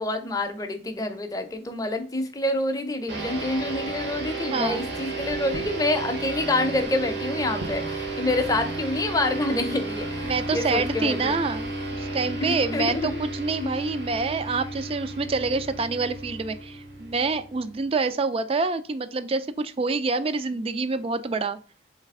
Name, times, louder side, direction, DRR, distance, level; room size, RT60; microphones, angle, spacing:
voice 1, 0.0-11.3 12.4-13.2 13.6-13.7, left 2 dB, 20° left, 6 dB, 0.6 m, -27 dB
sound 1, 3.1-17.9, right 2 dB, 75° right, 1.4 m, -33 dB
voice 2, 4.5-4.9 10.2-21.6, right 4 dB, 35° right, 12 dB, 0.3 m, -27 dB
sound 2, 4.6-11.9, right 2 dB, 60° right, 0.7 m, -43 dB
3.9 x 3.3 x 3.5 m, 0.39 s
head